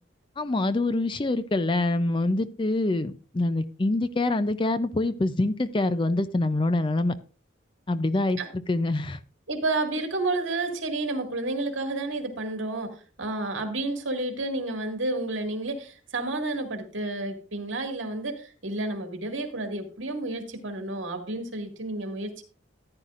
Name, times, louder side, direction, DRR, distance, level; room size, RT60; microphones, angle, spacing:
voice 1, 0.4-7.1 7.9-8.4 8.7-9.2, left 2 dB, 25° left, 13 dB, 0.4 m, -25 dB
voice 2, 9.5-22.4, right 2 dB, 70° right, 5 dB, 2.0 m, -30 dB
14.0 x 9.7 x 2.5 m, 0.37 s
head